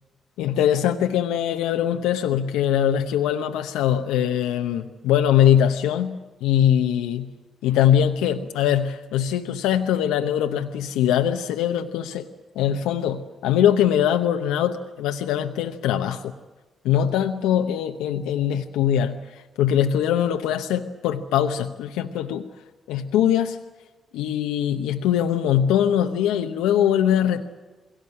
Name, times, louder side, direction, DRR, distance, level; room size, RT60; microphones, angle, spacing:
voice 1, 0.4-7.3 7.6-12.3 12.5-16.3 16.8-22.5 22.9-23.6 24.1-27.4, left 10 dB, 85° left, 5 dB, 0.9 m, -22 dB
21.5 x 17.5 x 9.8 m, 1.2 s
supercardioid pair, 50°, 0 cm